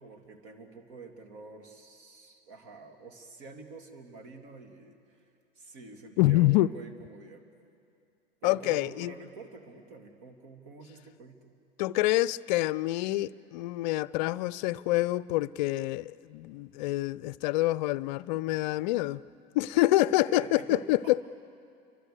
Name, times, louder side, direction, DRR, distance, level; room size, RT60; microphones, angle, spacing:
voice 1, 0.0-5.0 5.6-7.4 8.4-11.5 20.2-20.9, right 3 dB, 50° right, 2.9 m, -47 dB
voice 2, 6.2-6.7 8.4-9.1 11.8-19.2 19.5-21.2, left 17 dB, 45° left, 0.6 m, -26 dB
29.5 x 23.5 x 6.8 m
figure-of-eight pair, 85°, 31 cm